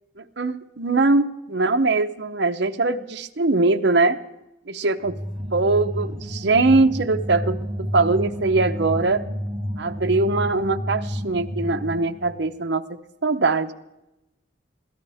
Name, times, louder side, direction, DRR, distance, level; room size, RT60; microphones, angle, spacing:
voice 1, 0.2-4.2 4.7-5.1 5.5-9.2 9.8-12.8 13.2-13.7, right 3 dB, 65° right, 5 dB, 0.8 m, -21 dB
sound 1, 5.0-12.3, equal, 30° right, 1.9 m, -30 dB
24.5 x 16.5 x 3.5 m, 0.93 s
head